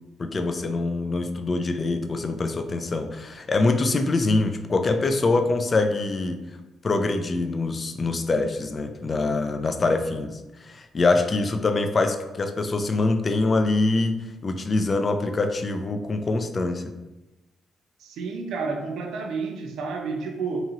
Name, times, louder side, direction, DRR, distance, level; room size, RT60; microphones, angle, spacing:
voice 1, 0.2-6.4 6.8-14.1 14.4-16.8, left 3 dB, 35° left, 7 dB, 0.3 m, -24 dB
voice 2, 18.0-20.6, right 4 dB, 80° right, 3 dB, 0.4 m, -30 dB
2.9 x 2.7 x 2.4 m, 1.1 s
cardioid pair, 90°, 0 cm